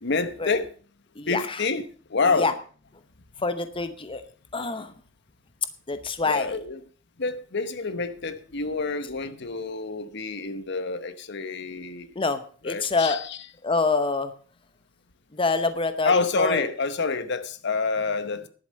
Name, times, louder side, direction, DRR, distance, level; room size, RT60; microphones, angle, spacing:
voice 1, 0.0-0.7 1.3-2.5 6.2-6.8 7.2-12.1 12.6-13.4 16.0-18.5, left 4 dB, 60° left, 0.9 m, -27 dB
voice 2, 1.2-1.6 2.2-2.5 3.4-4.2 4.5-4.9 5.9-6.5 12.1-13.2 13.6-14.3 15.3-16.7, left 3 dB, 25° left, 0.8 m, -26 dB
11.0 x 8.0 x 6.4 m
head